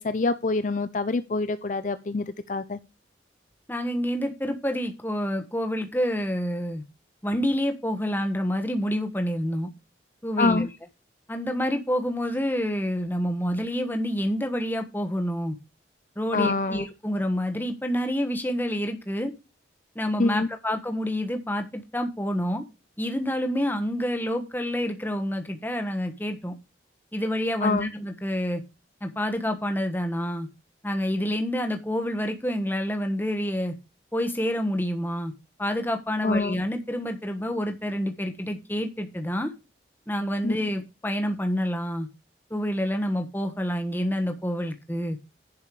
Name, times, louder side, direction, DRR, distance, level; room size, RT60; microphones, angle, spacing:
voice 1, 0.0-2.8 10.4-10.7 16.3-16.9 20.2-20.5 27.6-27.9 36.2-36.6 40.4-40.5, left 3 dB, 40° left, 0.5 m, -25 dB
voice 2, 3.7-6.8 7.2-9.7 10.2-10.7 11.3-15.6 16.2-19.3 19.9-22.6 23.0-26.5 27.1-28.6 29.0-30.5 30.8-33.7 34.1-35.3 35.6-39.5 40.1-42.1 42.5-45.2, equal, 10° left, 1.3 m, -28 dB
11.0 x 5.4 x 4.8 m
head